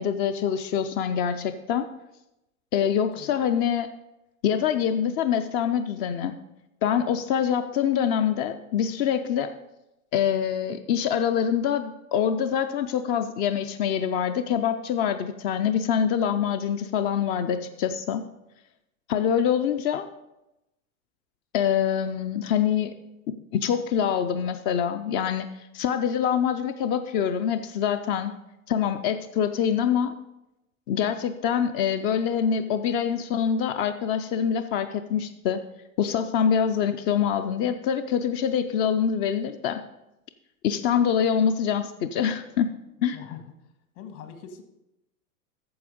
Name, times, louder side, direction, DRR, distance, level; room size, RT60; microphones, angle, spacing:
voice 1, 0.0-1.9 2.7-3.9 4.4-6.3 6.8-9.5 10.1-18.2 19.1-20.0 21.5-22.9 23.3-28.3 28.7-30.1 30.9-35.6 36.0-39.8 40.6-42.7 43.0-43.2, left 8 dB, 25° left, 9 dB, 0.3 m, -25 dB
voice 2, 43.1-43.4 44.0-44.6, left 7 dB, 60° left, 7 dB, 1.8 m, -42 dB
8.6 x 6.8 x 5.2 m, 0.90 s
hypercardioid pair, 110°, 41 cm